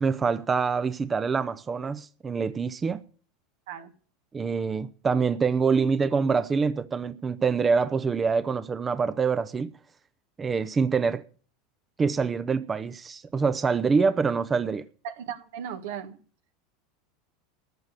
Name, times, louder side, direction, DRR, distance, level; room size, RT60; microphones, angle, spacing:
voice 1, 0.0-3.0 4.3-9.7 10.4-11.2 12.0-14.9, right 5 dB, 25° right, 0.7 m, -25 dB
voice 2, 15.0-16.2, right 9 dB, 75° right, 1.6 m, -36 dB
14.5 x 6.3 x 8.3 m
hypercardioid pair, 100°, 0 cm